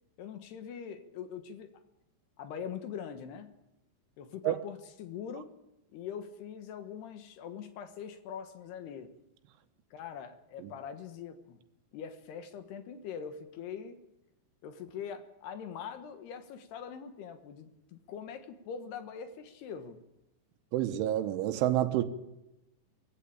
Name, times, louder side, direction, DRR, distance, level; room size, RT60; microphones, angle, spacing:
voice 1, 0.2-1.7 2.4-3.5 4.2-5.5 5.9-9.1 9.9-11.6 11.9-14.0 14.6-20.0, left 7 dB, 70° left, 3.1 m, -43 dB
voice 2, 20.7-22.0, right 13 dB, 90° right, 3.6 m, -28 dB
20.5 x 16.0 x 8.8 m
omnidirectional pair, 5.3 m